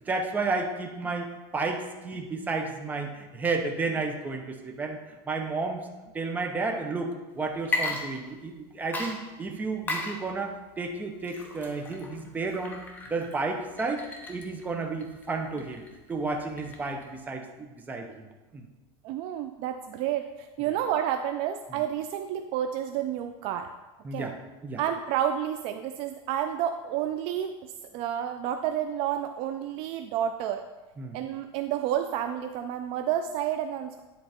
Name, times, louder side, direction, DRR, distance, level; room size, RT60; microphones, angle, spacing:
voice 1, 0.1-5.0 5.3-5.8 6.1-12.8 13.1-15.8 16.1-18.3 18.5-18.7 24.0-24.3 24.6-24.8 31.0-31.2, right 3 dB, 10° right, 3 dB, 0.8 m, -32 dB
Water / Liquid, 7.6-8.6 8.9-17.2, left 2 dB, 15° left, 0.9 m, -36 dB
voice 2, 19.0-23.7 24.1-24.3 24.8-30.6 31.1-34.0, right 10 dB, 45° right, 8 dB, 0.4 m, -30 dB
10.0 x 3.9 x 4.3 m, 1.2 s
supercardioid pair, 150°, 13 cm